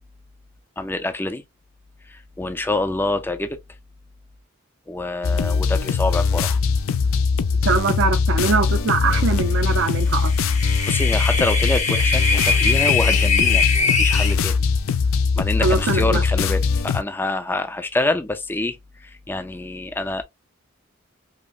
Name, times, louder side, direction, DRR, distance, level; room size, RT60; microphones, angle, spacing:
voice 1, 0.8-1.4 2.1-3.6 4.9-6.6 10.9-14.6 15.4-20.2, left 2 dB, 10° left, 0.3 m, -26 dB
sound 1, 5.2-17.0, left 5 dB, 80° left, 0.4 m, -21 dB
voice 2, 7.6-10.3 15.6-16.2, right 4 dB, 65° right, 0.5 m, -22 dB
sound 2, 10.1-14.4, left 5 dB, 35° left, 0.7 m, -22 dB
5.0 x 2.0 x 2.3 m
head